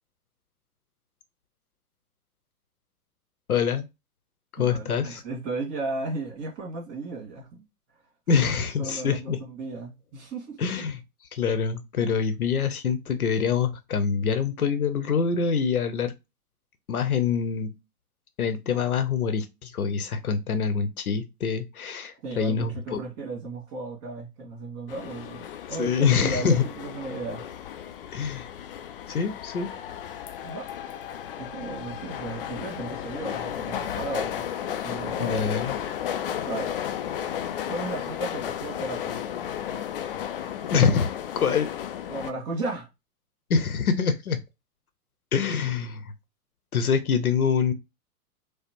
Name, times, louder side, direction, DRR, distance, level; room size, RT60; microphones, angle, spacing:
voice 1, 3.5-3.8 4.6-5.2 8.3-9.4 10.6-11.0 11.3-16.1 16.9-17.7 18.4-23.0 25.8-26.6 28.1-28.5 29.1-29.7 35.2-35.7 40.7-41.1 41.4-41.7 43.5-44.4 45.3-46.1 46.7-47.7, left 6 dB, 70° left, 0.8 m, -25 dB
voice 2, 4.6-7.6 8.3-8.5 8.8-10.6 22.2-27.4 30.4-30.7 31.4-35.5 36.5-36.7 37.7-39.2 42.1-42.9, right 3 dB, 35° right, 1.9 m, -35 dB
sound 1, 24.9-42.3, left 10 dB, 40° left, 0.4 m, -34 dB
4.9 x 2.1 x 2.9 m
figure-of-eight pair, 100°, 46 cm